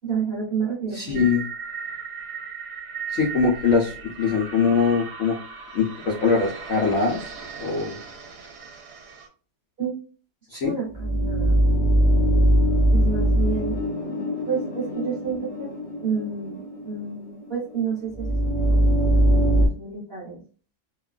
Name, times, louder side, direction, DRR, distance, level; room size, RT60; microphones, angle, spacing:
voice 1, 0.0-1.2 9.8-9.9 10.6-11.5 12.9-13.7 14.5-15.7 16.0-16.6 16.8-18.3 18.7-18.8 19.1-20.4, right 6 dB, 45° right, -5 dB, 0.8 m, -29 dB
voice 2, 0.9-1.4 3.1-5.3 5.7-7.2 7.6-8.0 10.5-10.7, left 5 dB, 85° left, -1 dB, 0.6 m, -22 dB
sound 1, 1.1-9.3, right 6 dB, 65° right, 1.1 m, -37 dB
sound 2, 10.9-19.7, right 1 dB, 30° left, 0.6 m, -21 dB
3.0 x 2.2 x 2.3 m, 0.38 s
omnidirectional pair, 2.1 m